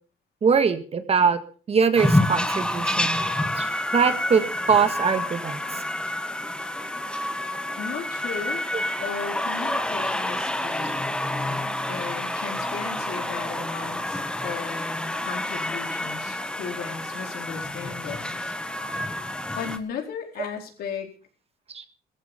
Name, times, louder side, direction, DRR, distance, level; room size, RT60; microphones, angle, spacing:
voice 1, 0.4-1.4 1.7-3.2 3.5-5.6 10.9-11.0 21.7-21.8, right 6 dB, 35° right, 9 dB, 1.8 m, -22 dB
sound 1, 2.0-19.8, left 1 dB, 5° left, 1.6 m, -28 dB
voice 2, 7.8-8.6 9.0-11.1 11.9-18.5 18.9-19.0 19.6-21.1, left 6 dB, 65° left, 3 dB, 4.5 m, -36 dB
17.0 x 14.5 x 5.2 m, 0.40 s
cardioid pair, 110°, 17 cm